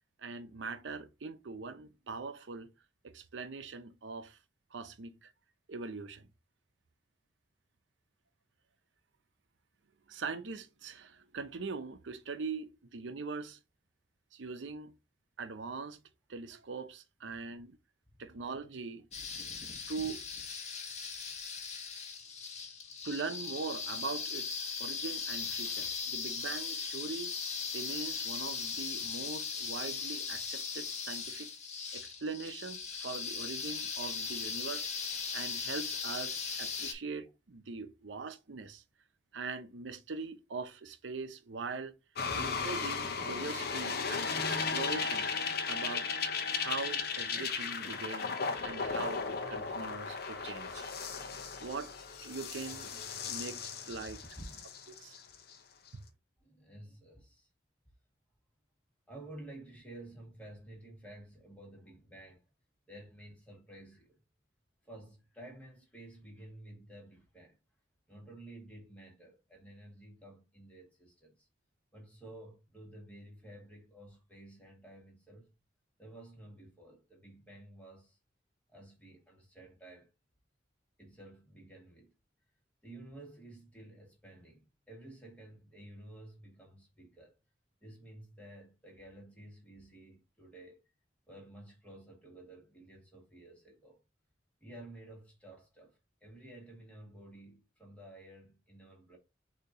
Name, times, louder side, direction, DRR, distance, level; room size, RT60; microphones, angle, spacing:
voice 1, 0.2-2.7 3.0-4.4 4.7-5.3 5.7-6.3 10.1-13.6 14.3-14.9 15.4-16.0 16.3-17.8 18.2-19.1 19.9-20.2 23.0-27.3 27.7-31.5 31.9-34.9 35.3-38.8 39.3-41.9 42.4-45.3 45.7-46.1 46.5-48.3 48.6-50.9 51.3-51.9 52.2-54.2 55.0-55.2 55.9-56.0, right 4 dB, 85° right, 0.6 m, -42 dB
sound 1, 19.1-36.9, left 5 dB, 40° left, 1.1 m, -38 dB
sound 2, 42.2-55.5 55.9-56.0, left 5 dB, 60° left, 0.8 m, -36 dB
voice 2, 53.8-54.7 56.4-57.5 59.1-62.4 62.9-64.2 64.8-67.6 68.1-71.5 71.9-75.5 76.0-78.2 78.7-80.1 81.0-82.1 82.8-87.3 87.8-90.8 91.3-94.0 94.6-99.2, right 1 dB, 10° left, 1.9 m, -52 dB
6.6 x 2.8 x 2.8 m
head